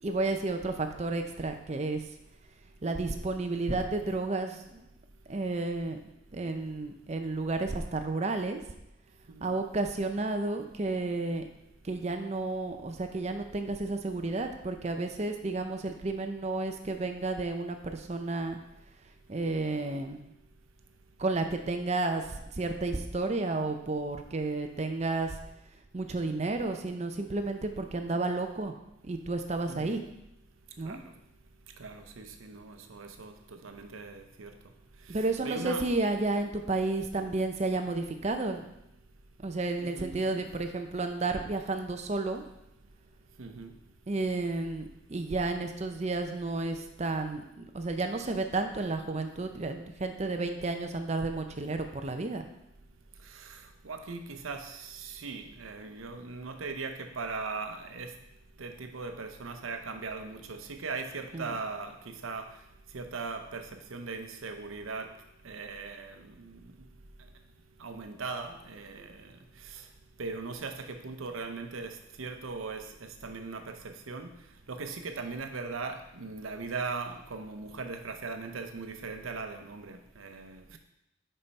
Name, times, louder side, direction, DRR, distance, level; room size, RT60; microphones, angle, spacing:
voice 1, 0.0-2.0 2.8-4.9 5.3-6.0 6.3-8.6 9.4-11.4 11.8-18.6 19.3-20.3 21.2-25.4 25.9-28.7 29.0-30.0 30.8-31.0 35.1-38.6 39.4-42.4 44.1-52.4 61.3-61.6, right 3 dB, 35° right, 6 dB, 0.5 m, -32 dB
voice 2, 29.7-30.0 30.8-31.1 31.8-34.5 35.1-35.8 39.8-40.5 43.4-43.7 53.2-58.1 58.6-62.5 62.9-65.1 65.4-66.6 67.8-69.8 70.2-74.3 74.7-80.8, right 4 dB, 85° right, 6 dB, 0.7 m, -39 dB
5.5 x 5.5 x 4.1 m, 0.85 s
head